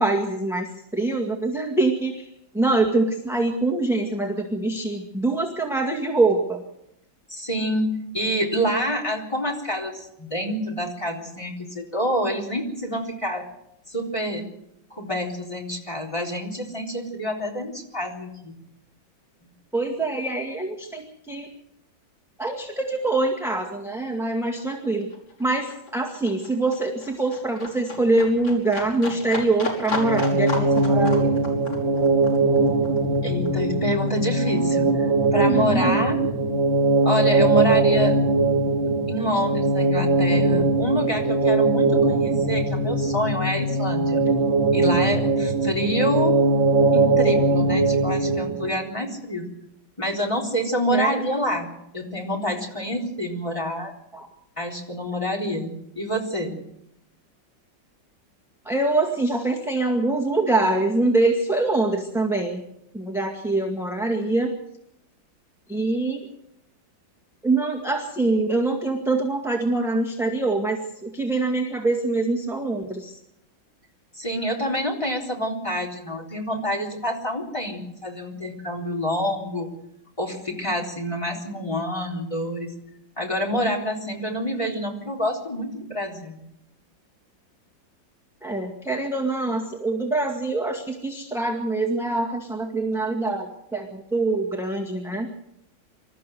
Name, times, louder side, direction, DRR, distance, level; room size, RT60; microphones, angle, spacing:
voice 1, 0.0-2.3 2.5-6.6 19.7-21.5 22.4-25.1 25.4-31.3 35.5-36.0 50.9-51.2 54.1-54.3 58.7-62.6 62.9-64.5 65.7-66.3 67.4-73.2 88.4-95.3, right 2 dB, ahead, 0 dB, 1.8 m, -24 dB
voice 2, 7.3-13.5 13.9-14.4 14.9-18.6 33.2-36.2 37.0-38.2 38.8-44.2 44.7-46.4 46.9-49.4 50.0-53.9 54.6-56.6 74.2-79.7 80.2-82.7 83.2-86.4, equal, 15° left, 0 dB, 3.9 m, -27 dB
Livestock farm animals working animals, 22.9-23.0 23.3-34.3 34.6-35.6 35.9-36.0, left 3 dB, 75° left, 6.0 m, -35 dB
sound 1, 29.9-48.7, right 3 dB, 75° right, 4.6 m, -21 dB
26.0 x 13.5 x 7.8 m, 0.80 s
omnidirectional pair, 2.1 m